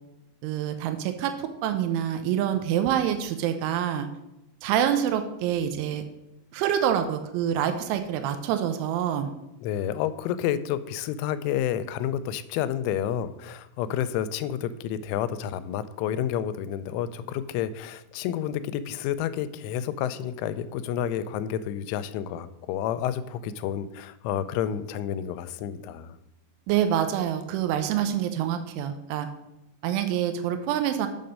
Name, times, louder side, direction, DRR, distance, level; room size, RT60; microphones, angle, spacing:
voice 1, 0.4-4.1 4.6-6.0 6.5-9.3 26.7-29.3 29.8-31.1, right 10 dB, 90° right, 7 dB, 3.1 m, -26 dB
voice 2, 9.6-26.2, left 10 dB, 90° left, 13 dB, 3.0 m, -30 dB
7.4 x 6.7 x 5.3 m, 0.92 s
omnidirectional pair, 5.5 m